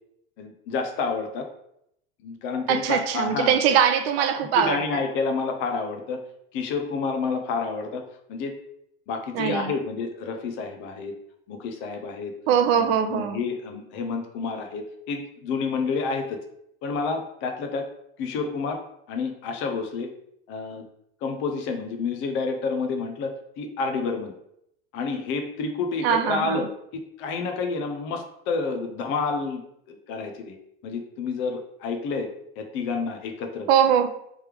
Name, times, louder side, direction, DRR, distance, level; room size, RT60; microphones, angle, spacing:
voice 1, 0.4-1.5 2.2-3.6 4.5-6.2 6.5-8.0 8.3-8.6 9.1-11.1 11.5-12.3 12.7-16.4 16.8-17.9 18.2-18.8 19.1-20.1 20.5-20.8 21.2-23.3 23.6-24.3 24.9-26.7 26.9-29.6 29.9-30.6 30.8-32.3 32.6-33.7, left 4 dB, 40° left, 0.5 m, -29 dB
voice 2, 2.7-4.8 9.3-9.7 12.5-13.4 26.0-26.6 33.7-34.1, right 8 dB, 65° right, 0.5 m, -21 dB
3.2 x 3.1 x 3.3 m
supercardioid pair, 160°, 32 cm